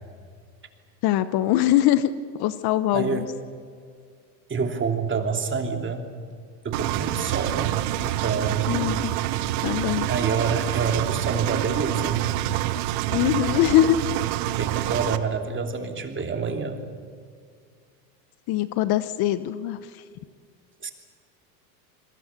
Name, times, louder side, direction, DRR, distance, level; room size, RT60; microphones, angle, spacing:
voice 1, 1.0-2.1 2.4-3.3 8.7-9.1 9.6-10.1 13.1-14.0 18.5-19.8, left 13 dB, 50° left, 14 dB, 1.1 m, -22 dB
voice 2, 2.9-3.3 4.5-6.1 6.6-8.8 10.1-12.3 14.6-16.9 20.8-20.9, right 5 dB, 25° right, 5 dB, 3.1 m, -27 dB
Engine, 6.7-15.2, right 14 dB, 60° right, 1.4 m, -27 dB
26.0 x 23.0 x 6.9 m, 2.1 s
hypercardioid pair, 100°, 49 cm